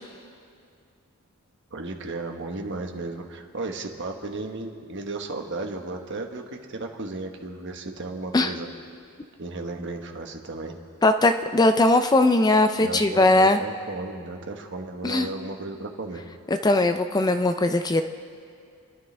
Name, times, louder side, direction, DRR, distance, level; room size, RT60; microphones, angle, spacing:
voice 1, 1.7-8.7 9.4-10.8 12.8-16.2, right 2 dB, 55° right, 3 dB, 1.3 m, -34 dB
voice 2, 11.0-13.6 15.0-15.3 16.6-18.0, left 2 dB, 20° left, 8 dB, 0.4 m, -19 dB
28.5 x 12.0 x 3.4 m, 2.3 s
head